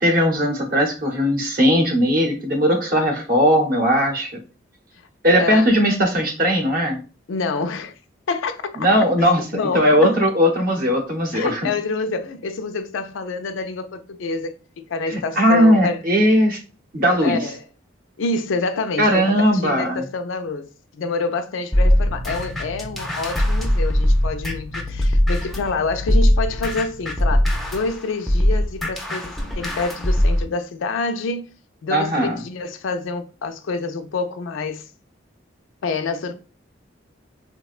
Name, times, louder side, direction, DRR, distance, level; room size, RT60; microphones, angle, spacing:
voice 1, 0.0-4.3 5.2-7.0 8.8-11.6 15.1-16.6 16.9-17.5 19.0-20.0 31.9-32.4, equal, 45° right, 0.7 m, -18 dB
voice 2, 5.4-5.8 7.3-8.0 8.3-8.9 9.4-10.2 11.3-16.0 17.2-17.6 18.2-31.5 31.8-34.9 35.8-36.3, left 3 dB, 85° left, 0.4 m, -27 dB
sound 1, 21.7-25.7 26.1-30.5, equal, ahead, 0.4 m, -20 dB
sound 2, 22.0-27.8, left 2 dB, 85° right, 0.7 m, -36 dB
3.5 x 2.2 x 2.4 m
head